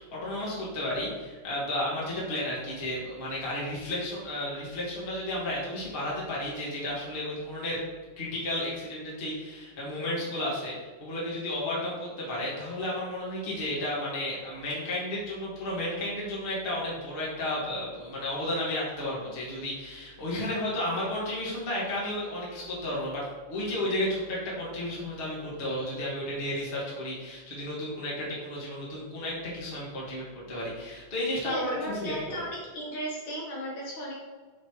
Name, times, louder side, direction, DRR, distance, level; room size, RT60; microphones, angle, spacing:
voice 1, 0.0-7.8 8.2-32.1, left 1 dB, 75° left, -6 dB, 0.5 m, -33 dB
voice 2, 31.4-32.5 32.7-34.1, equal, 60° left, -4 dB, 2.0 m, -35 dB
5.9 x 5.3 x 4.8 m, 1.4 s
omnidirectional pair, 5.0 m